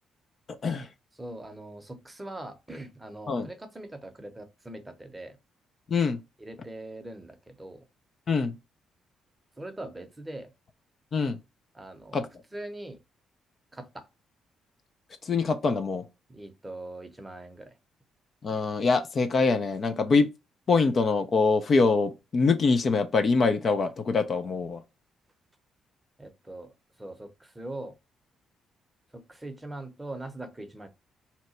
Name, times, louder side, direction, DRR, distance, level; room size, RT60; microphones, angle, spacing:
voice 1, 1.2-5.4 6.4-7.8 9.6-10.5 11.7-12.2 12.5-13.0 13.7-14.1 16.3-17.7 26.2-26.7 27.0-28.0 29.1-30.9, right 1 dB, 15° right, 0.7 m, -41 dB
voice 2, 5.9-6.2 8.3-8.6 11.1-11.4 12.1-12.3 15.2-16.0 18.4-20.3 20.7-24.8, left 4 dB, 45° left, 0.4 m, -24 dB
2.8 x 2.1 x 4.1 m
cardioid pair, 90°, 0 cm